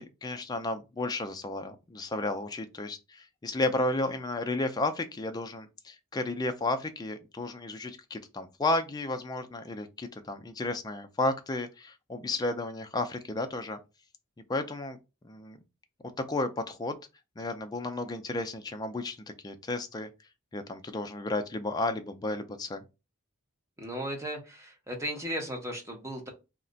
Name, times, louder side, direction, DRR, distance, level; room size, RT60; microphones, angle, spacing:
voice 1, 0.0-13.8 14.5-15.0 15.2-15.6 16.2-17.0 17.4-19.2 19.4-20.1 20.5-22.8, left 2 dB, 20° left, 0.3 m, -33 dB
voice 2, 23.8-26.3, equal, 15° right, 0.7 m, -36 dB
2.4 x 2.1 x 3.7 m
head